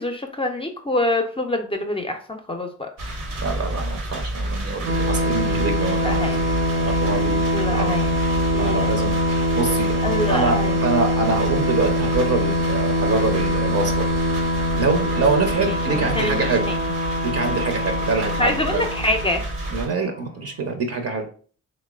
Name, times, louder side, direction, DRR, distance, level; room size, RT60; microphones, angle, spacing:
voice 1, 0.0-2.9 6.0-6.4 7.5-8.1 8.5-8.9 10.0-10.8 15.6-16.8 18.4-19.4, left 1 dB, 15° left, 5 dB, 0.5 m, -25 dB
sound 1, 3.0-19.9, right 1 dB, 70° right, 0.9 m, -31 dB
voice 2, 3.4-6.2 6.8-7.4 7.7-7.8 8.6-10.0 10.3-14.1 14.7-16.7 17.2-18.8 19.7-21.3, right 3 dB, 45° right, 4 dB, 0.6 m, -25 dB
sound 2, 4.8-20.2, equal, 90° right, 0.5 m, -23 dB
3.0 x 2.0 x 2.3 m, 0.42 s
hypercardioid pair, 45°, 35 cm